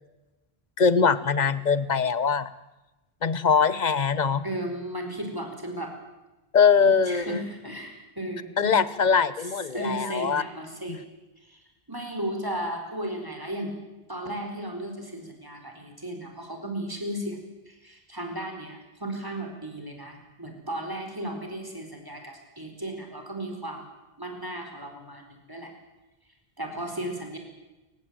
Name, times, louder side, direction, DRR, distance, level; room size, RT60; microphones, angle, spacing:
voice 1, 0.8-2.5 3.2-4.4 6.5-7.4 8.6-10.4 10.9-11.0, left 6 dB, 45° left, 16 dB, 1.1 m, -22 dB
voice 2, 4.4-5.9 6.8-8.7 9.4-11.0 11.4-11.6 11.9-13.8 14.1-17.4 17.7-23.9 24.2-25.7 26.6-27.4, right 1 dB, 20° right, 4 dB, 4.6 m, -35 dB
28.0 x 16.5 x 8.9 m, 1.1 s
omnidirectional pair, 1.1 m